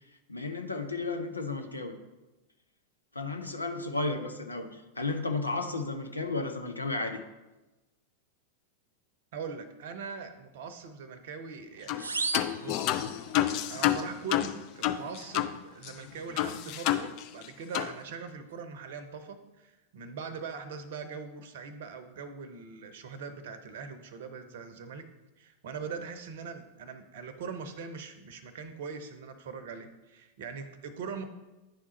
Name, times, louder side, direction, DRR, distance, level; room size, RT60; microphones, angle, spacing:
voice 1, 0.3-2.0 3.1-7.2, left 3 dB, 80° left, 5 dB, 0.7 m, -33 dB
voice 2, 9.3-12.0 12.6-13.0 13.7-25.1 25.4-31.2, right 5 dB, 55° right, 10 dB, 0.7 m, -41 dB
sound 1, 11.9-12.1 12.3-15.5 15.8-15.9 16.4-17.5 17.7-17.9, left 12 dB, 40° left, 0.4 m, -29 dB
sound 2, 12.0-13.5, right 4 dB, 75° right, 0.3 m, -35 dB
10.0 x 3.6 x 4.1 m, 1.1 s
figure-of-eight pair, 90°, 0 cm